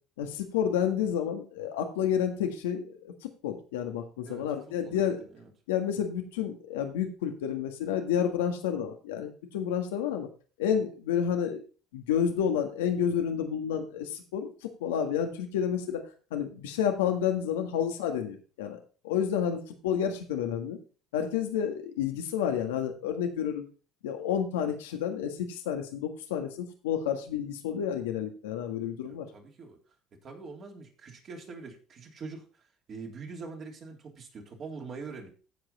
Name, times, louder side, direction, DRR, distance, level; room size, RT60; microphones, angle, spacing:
voice 1, 0.2-5.3 5.7-10.3 10.6-11.6 11.9-16.0 16.3-18.8 19.0-20.8 21.1-23.6 24.0-29.3, left 8 dB, 90° left, 5 dB, 1.6 m, -30 dB
voice 2, 29.0-29.8 30.1-35.3, right 4 dB, 45° right, 1 dB, 3.2 m, -44 dB
15.0 x 5.1 x 4.2 m, 0.37 s
supercardioid pair, 75°, 0 cm